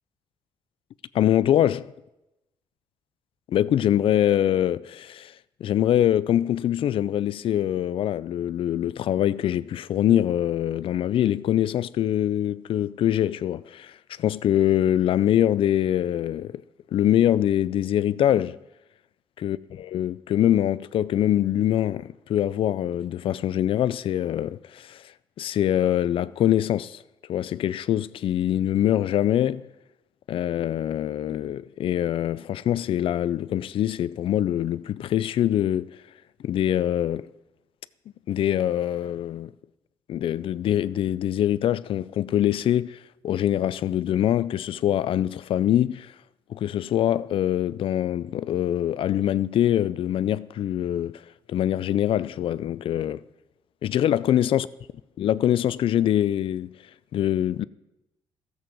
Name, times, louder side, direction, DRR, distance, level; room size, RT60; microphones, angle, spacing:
voice 1, 1.1-1.9 3.5-16.6 16.9-18.6 19.4-27.0 27.3-29.7 30.3-36.0 36.4-37.3 38.3-39.5 40.1-46.1 46.5-51.2 51.5-53.2 53.8-54.7 55.2-56.8 57.1-57.6, left 11 dB, 65° left, 0.4 m, -24 dB
13.0 x 7.9 x 5.2 m
cardioid pair, 70°, 10 cm